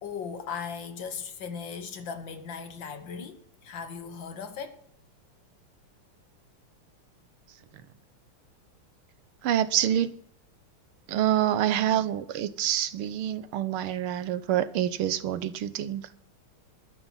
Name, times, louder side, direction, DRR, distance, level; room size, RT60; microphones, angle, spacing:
voice 1, 0.0-4.8, left 6 dB, 60° left, 1.8 m, -38 dB
voice 2, 9.4-10.1 11.1-16.1, right 11 dB, 80° right, 1.7 m, -27 dB
12.5 x 10.5 x 5.6 m
omnidirectional pair, 2.4 m